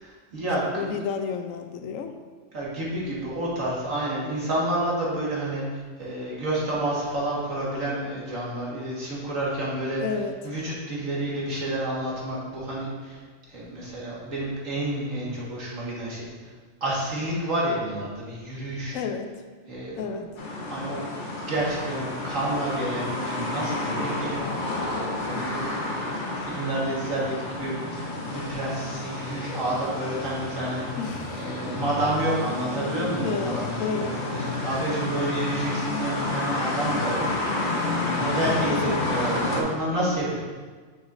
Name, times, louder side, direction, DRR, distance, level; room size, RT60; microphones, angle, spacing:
voice 1, 0.0-0.6 2.5-5.6 6.0-10.0 10.4-13.2 13.5-16.3 16.8-19.0 19.7-20.1 20.7-21.0 21.5-25.7 26.4-30.8 31.3-33.6 34.0-37.2 38.1-40.4, right 1 dB, 80° right, -6 dB, 2.1 m, -29 dB
voice 2, 0.7-2.1 10.0-10.4 18.9-19.4 20.0-20.3 31.0-31.8 33.2-34.2 38.7-39.1 39.9-40.1, left 6 dB, 85° left, 6 dB, 1.0 m, -31 dB
sound 1, 20.4-39.6, left 2 dB, 45° left, 0.9 m, -30 dB
7.0 x 6.1 x 2.6 m, 1.5 s
omnidirectional pair, 1.4 m